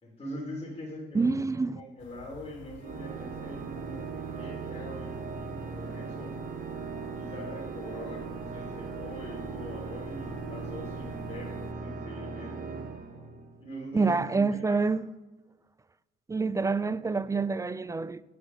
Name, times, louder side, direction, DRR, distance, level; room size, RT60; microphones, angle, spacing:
voice 1, 0.0-6.3 7.1-12.7 13.6-14.8, equal, 30° left, 3.3 m, -43 dB
voice 2, 1.1-1.8 13.9-15.0 16.3-18.2, right 4 dB, 15° right, 0.3 m, -27 dB
sound 1, 2.0-11.7, left 10 dB, 75° left, 0.6 m, -51 dB
Organ, 2.8-13.8, right 5 dB, 45° right, 1.0 m, -38 dB
10.0 x 6.4 x 6.3 m
cardioid pair, 90°, 20 cm